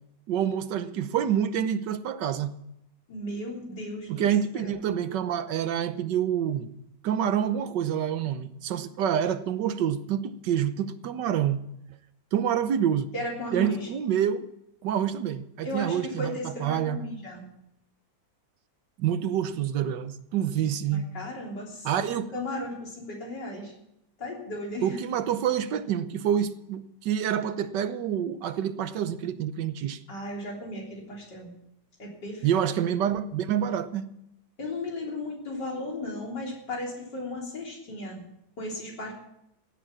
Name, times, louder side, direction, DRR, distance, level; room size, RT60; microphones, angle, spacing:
voice 1, 0.3-2.5 4.1-6.7 7.0-11.6 12.3-13.1 13.5-14.5 14.8-17.0 19.0-21.1 21.8-22.3 24.8-30.0 32.4-34.1, right 9 dB, 85° right, 1.5 m, -27 dB
voice 2, 3.1-4.3 4.5-4.7 13.1-13.9 15.6-17.5 20.9-22.1 22.3-23.7 24.2-25.0 30.1-31.5 32.0-32.6 34.6-38.2 38.6-39.1, left 1 dB, 80° left, 4.3 m, -35 dB
15.5 x 9.3 x 7.4 m
omnidirectional pair, 1.8 m